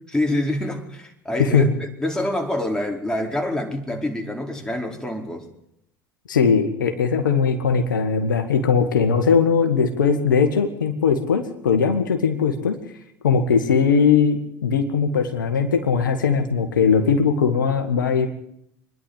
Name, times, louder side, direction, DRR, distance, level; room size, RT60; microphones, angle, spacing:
voice 1, 0.1-5.5, left 1 dB, 5° left, 2 dB, 4.7 m, -26 dB
voice 2, 6.3-12.8 13.2-18.3, left 6 dB, 85° left, 6 dB, 1.9 m, -19 dB
25.0 x 11.0 x 9.9 m, 0.76 s
hypercardioid pair, 75°, 10 cm